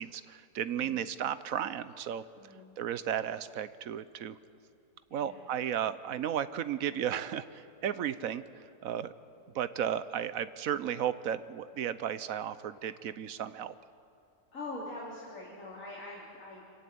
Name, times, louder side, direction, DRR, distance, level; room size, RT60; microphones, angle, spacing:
voice 1, 0.0-2.2 2.8-4.4 5.1-8.4 8.8-9.1 9.5-13.7, right 9 dB, 65° right, 14 dB, 1.0 m, -34 dB
voice 2, 0.6-1.0 2.3-2.7 5.1-5.5 14.5-16.7, left 2 dB, 50° left, -4 dB, 3.5 m, -44 dB
25.0 x 15.5 x 9.3 m, 2.5 s
omnidirectional pair, 1.8 m